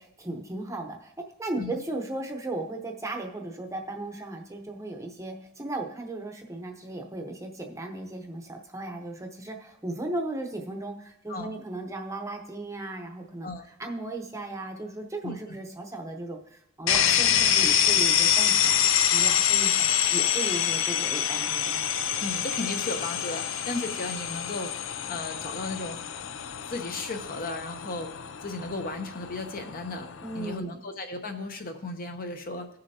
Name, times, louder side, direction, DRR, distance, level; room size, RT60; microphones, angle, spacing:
voice 1, 0.0-18.8 19.1-21.9 30.2-30.8, right 2 dB, 15° right, 3 dB, 0.8 m, -36 dB
sound 1, 16.9-30.6, left 9 dB, 65° left, 0.5 m, -26 dB
voice 2, 22.2-24.7 25.1-26.0 26.7-28.1 28.4-30.1 30.3-32.7, left 2 dB, 45° left, 5 dB, 0.8 m, -35 dB
15.5 x 6.7 x 2.8 m, 0.76 s
head